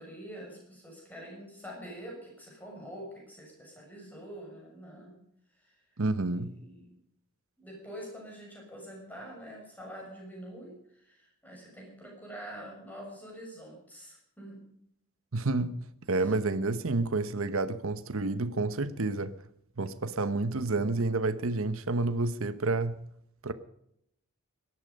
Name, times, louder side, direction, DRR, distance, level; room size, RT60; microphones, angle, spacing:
voice 1, 0.0-5.2 5.5-5.8 6.2-7.0 7.6-14.6, equal, 5° left, 6.5 m, -46 dB
voice 2, 6.0-6.5 15.3-15.7 16.1-19.3 19.8-23.0 23.4-23.5, right 3 dB, 65° right, 0.9 m, -29 dB
18.5 x 12.5 x 5.3 m
head